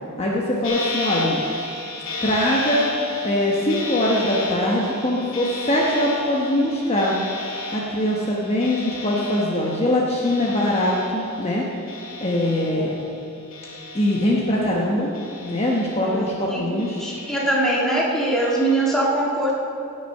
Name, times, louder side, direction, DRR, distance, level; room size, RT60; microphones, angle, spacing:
voice 1, 0.2-1.4 2.2-2.9 3.2-7.1 7.7-11.6 12.2-12.9 13.9-15.1 15.4-17.0, left 1 dB, 30° left, -3 dB, 1.0 m, -22 dB
sound 1, 0.6-13.2 13.5-14.7 15.1-16.4 16.8-17.8 18.4-18.9, left 2 dB, 65° left, 2.2 m, -33 dB
voice 2, 16.0-16.6 17.0-19.5, right 1 dB, ahead, -5 dB, 1.8 m, -22 dB
16.5 x 6.5 x 5.5 m, 2.6 s
head